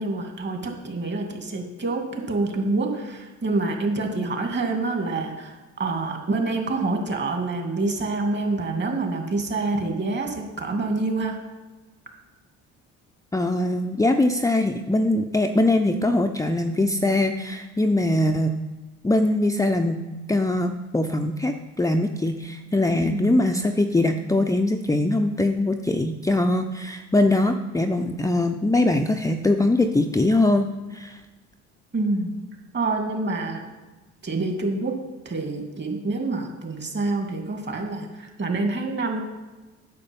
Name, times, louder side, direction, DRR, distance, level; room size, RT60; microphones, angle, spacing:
voice 1, 0.0-11.4 23.0-23.4 31.9-32.3 32.7-33.6 34.2-35.0 35.3-39.2, right 3 dB, 35° right, 3 dB, 2.4 m, -27 dB
voice 2, 13.3-18.5 19.0-20.0 20.3-31.2, left 2 dB, 10° left, 4 dB, 0.7 m, -22 dB
9.5 x 6.7 x 5.4 m, 1.2 s
hypercardioid pair, 65°, 32 cm